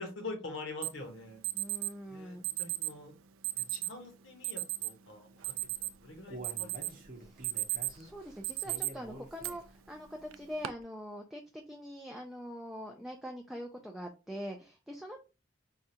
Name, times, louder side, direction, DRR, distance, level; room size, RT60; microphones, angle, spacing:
voice 1, 0.0-1.4 2.1-3.1 3.5-5.3 5.8-7.0, left 2 dB, 70° left, 3 dB, 1.1 m, -44 dB
Alarm, 0.8-0.9 1.4-1.9 2.4-2.9 3.4-3.9 4.4-4.9 5.3-6.1 6.4-6.9 7.3-8.0 8.4-8.9 9.4-9.5 10.3-10.7, right 18 dB, 85° right, 0.4 m, -34 dB
voice 2, 1.5-2.5 7.2-7.3 7.9-11.4 11.7-15.2, equal, ahead, 1 dB, 0.3 m, -43 dB
Human voice, 5.7-9.8 10.2-10.3 10.8-10.9, right 2 dB, 45° right, 0.8 m, -48 dB
4.8 x 2.3 x 2.7 m, 0.30 s
head